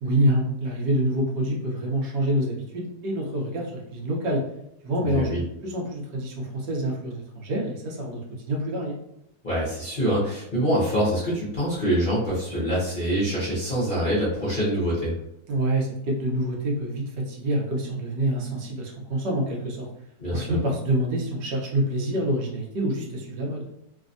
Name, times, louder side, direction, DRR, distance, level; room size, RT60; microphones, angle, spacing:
voice 1, 0.0-4.4 4.8-5.3 5.6-8.2 8.5-9.0 15.5-19.9 20.3-23.7, right 1 dB, 75° right, -1 dB, 1.3 m, -26 dB
voice 2, 5.0-5.4 9.4-15.1 20.2-20.6, equal, 45° left, -9 dB, 0.7 m, -25 dB
3.3 x 2.2 x 2.5 m, 0.82 s
omnidirectional pair, 1.9 m